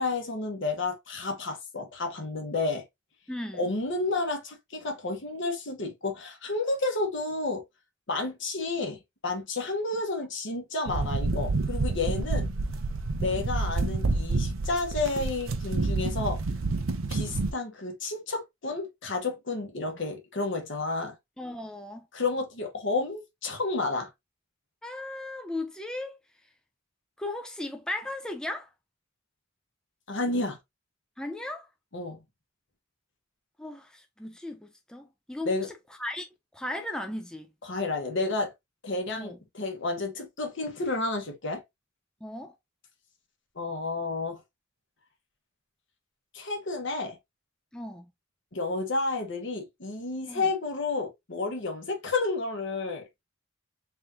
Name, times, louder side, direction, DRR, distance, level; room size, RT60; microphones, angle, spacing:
voice 1, 0.0-2.8 3.6-7.6 8.1-12.5 13.2-16.4 17.1-21.2 22.1-24.1 30.1-30.6 31.9-32.2 35.4-35.7 37.6-38.5 38.8-41.6 43.5-44.4 46.3-47.2 48.5-53.1, left 3 dB, 65° left, 1.3 m, -31 dB
voice 2, 3.3-3.7 21.4-22.1 24.8-26.2 27.2-28.7 31.2-31.7 33.6-37.5 39.2-39.4 42.2-42.6 47.7-48.1 50.3-50.5, left 1 dB, 5° left, 0.4 m, -37 dB
sound 1, 10.9-17.5, right 3 dB, 85° right, 0.7 m, -29 dB
3.7 x 3.6 x 2.7 m
head